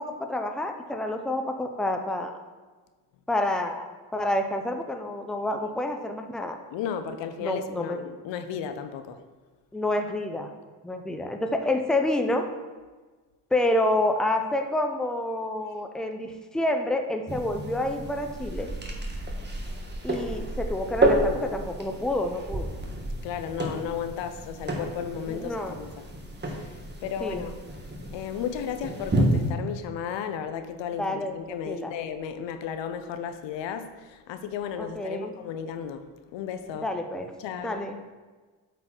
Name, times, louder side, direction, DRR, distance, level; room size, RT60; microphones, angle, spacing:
voice 1, 0.0-2.3 3.3-6.6 7.4-8.0 9.7-10.5 10.8-12.5 13.5-18.7 20.0-22.7 25.3-25.8 27.2-27.4 31.0-31.3 31.7-31.9 34.8-35.3 36.8-37.3 37.6-38.0, left 1 dB, ahead, 5 dB, 0.6 m, -28 dB
voice 2, 6.7-9.2 23.2-26.1 26.5-27.6 28.1-36.9 37.4-37.8, left 8 dB, 80° left, 9 dB, 0.7 m, -34 dB
sound 1, 17.3-29.5, right 1 dB, 25° right, 1.3 m, -30 dB
8.0 x 4.2 x 4.4 m, 1.3 s
cardioid pair, 80°, 43 cm